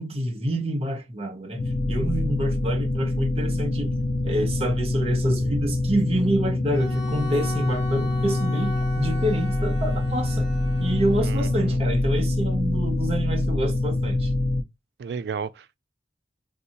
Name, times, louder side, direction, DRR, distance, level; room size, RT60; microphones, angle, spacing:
voice 1, 0.0-1.6 1.9-3.9 4.2-10.5 10.8-14.3, right 1 dB, 35° right, 0.8 m, -27 dB
sound 1, 1.6-14.6, left 2 dB, 55° left, 0.5 m, -25 dB
Bowed string instrument, 6.7-11.7, left 2 dB, ahead, 1.1 m, -38 dB
voice 2, 11.2-11.8 15.0-15.8, right 6 dB, 70° right, 0.3 m, -33 dB
2.7 x 2.3 x 3.9 m
head